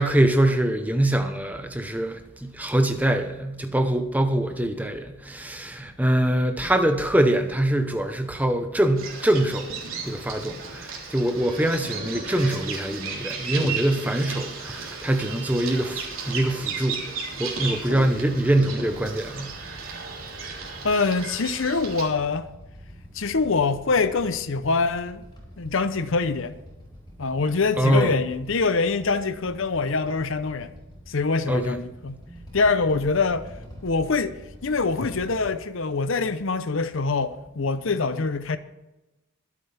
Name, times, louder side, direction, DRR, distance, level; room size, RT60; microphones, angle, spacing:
voice 1, 0.0-9.8 10.1-17.0 17.4-19.5 27.8-28.1 31.5-31.8 32.3-32.4, right 1 dB, 5° right, 0.9 m, -24 dB
Bird vocalization bird call bird song, 8.9-22.1, right 5 dB, 70° right, 3.6 m, -34 dB
Motorcycle / Idling, 18.9-35.5, equal, 20° left, 4.5 m, -46 dB
voice 2, 20.8-22.5 23.1-25.2 25.6-26.6 27.2-30.7 31.1-32.2 32.5-33.5 33.8-38.6, left 4 dB, 65° left, 0.7 m, -24 dB
23.0 x 8.4 x 3.4 m
head